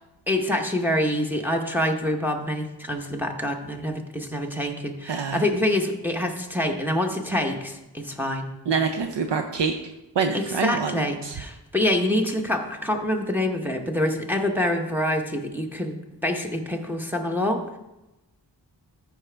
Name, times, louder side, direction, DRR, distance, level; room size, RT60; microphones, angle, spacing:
voice 1, 0.3-8.5 10.3-16.0 16.2-17.8, left 1 dB, 5° right, 2 dB, 0.8 m, -26 dB
voice 2, 5.0-5.4 8.7-9.8 10.1-11.4, right 5 dB, 75° right, 6 dB, 0.6 m, -26 dB
13.5 x 4.9 x 3.3 m, 1.0 s
wide cardioid pair, 90°, 44 cm